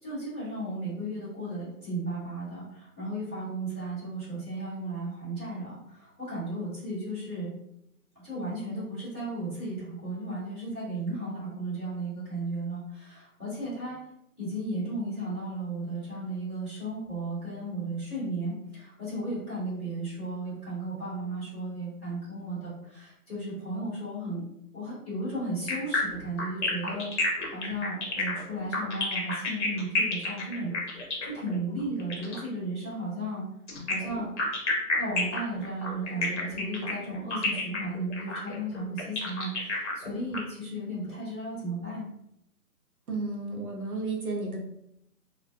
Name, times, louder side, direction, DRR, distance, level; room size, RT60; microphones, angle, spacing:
voice 1, 0.0-7.5 8.2-14.0 14.4-24.4 24.7-30.7 31.3-33.4 33.9-34.3 35.0-42.0, right 1 dB, 5° left, -20 dB, 0.7 m, -35 dB
sound 1, 25.7-32.5 33.7-40.4, left 3 dB, 50° left, 0.8 m, -30 dB
voice 2, 43.1-44.6, right 3 dB, 65° right, 0 dB, 0.9 m, -32 dB
2.3 x 2.2 x 2.6 m, 0.78 s
hypercardioid pair, 160°, 47 cm